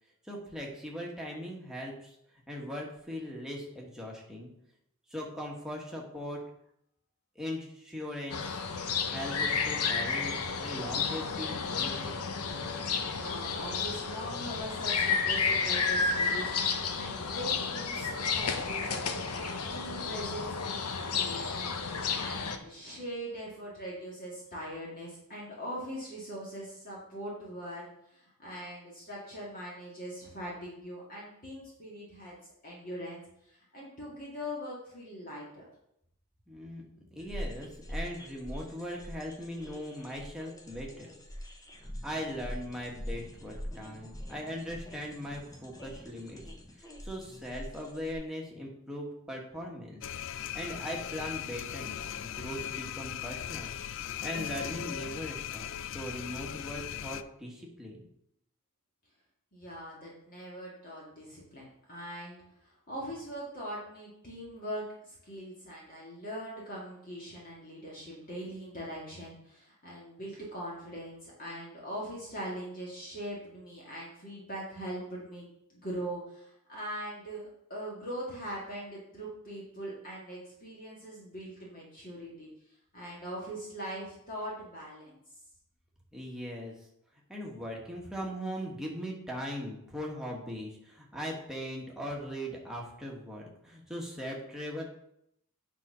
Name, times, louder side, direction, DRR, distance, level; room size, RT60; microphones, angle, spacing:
voice 1, 0.2-2.2 2.5-4.5 5.1-6.4 7.3-8.6 9.1-12.3 36.5-36.8 37.1-41.1 42.0-46.4 46.7-50.0 50.5-53.7 54.2-58.0 86.1-86.9 87.3-94.8, equal, ahead, -2 dB, 1.5 m, -39 dB
sound 1, 8.3-22.6, left 5 dB, 90° left, 0.8 m, -31 dB
voice 2, 13.0-32.4 32.6-35.7 59.5-75.4 75.7-82.5 82.9-85.2, equal, 40° left, -5 dB, 2.1 m, -41 dB
sound 2, 37.2-48.1, equal, 15° left, 0.8 m, -43 dB
sound 3, 50.0-57.2, left 10 dB, 60° left, 0.4 m, -38 dB
9.5 x 4.2 x 5.5 m, 0.76 s
head